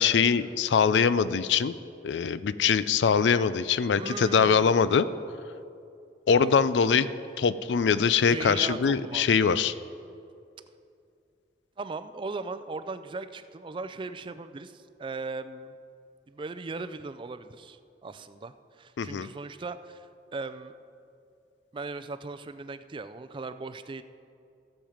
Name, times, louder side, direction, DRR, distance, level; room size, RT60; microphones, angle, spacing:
voice 1, 0.0-1.7 2.0-5.1 6.3-7.1 7.4-9.7 19.0-19.3, left 6 dB, 90° left, 15 dB, 0.4 m, -23 dB
voice 2, 4.0-4.7 6.3-6.7 8.3-9.3 11.8-15.7 16.3-20.7 21.7-24.0, right 3 dB, 30° right, 11 dB, 0.4 m, -38 dB
15.0 x 7.2 x 5.0 m, 2.5 s
head